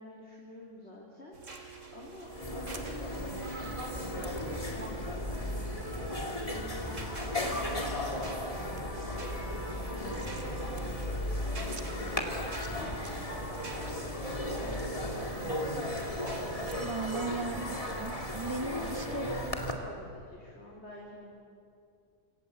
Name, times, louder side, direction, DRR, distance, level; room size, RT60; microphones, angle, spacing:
voice 1, 0.0-1.6 1.9-12.2 12.7-15.6 18.8-21.3, left 1 dB, 55° left, -3 dB, 4.0 m, -48 dB
sound 1, 1.3-17.1, right 5 dB, 70° right, 3.1 m, -49 dB
sound 2, 1.4-1.7 2.7-2.8 3.6-3.8 4.2-4.3 4.7-5.0 5.3-5.4 5.7-5.8 6.5-6.6 7.1-7.7 8.1-8.5 8.8-8.9 9.1-10.5 10.8-10.9 11.1-11.2 11.7-11.9 12.4-13.1 13.5-13.9 14.4-16.0 16.6-17.2 17.5-19.4 19.7-19.8, right 4 dB, 40° right, 1.8 m, -52 dB
sound 3, 2.0-2.1 2.3-19.7, left 1 dB, 25° left, 2.6 m, -35 dB
voice 2, 16.6-19.3, right 3 dB, 20° right, 9 dB, 1.2 m, -37 dB
27.0 x 25.5 x 8.2 m, 2.4 s
omnidirectional pair, 1.4 m